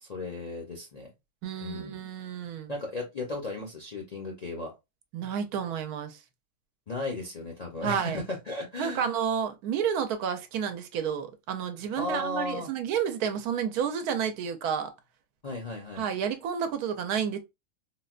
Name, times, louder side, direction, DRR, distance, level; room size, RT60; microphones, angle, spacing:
voice 1, 0.0-1.1 1.6-2.0 2.7-4.8 6.9-9.1 12.0-12.7 15.4-16.0, left 2 dB, 45° left, 0.5 m, -35 dB
voice 2, 1.4-2.7 5.1-6.2 7.8-8.2 8.8-14.9 16.0-17.4, right 7 dB, 80° right, 1.1 m, -30 dB
3.9 x 2.1 x 2.3 m
omnidirectional pair, 1.6 m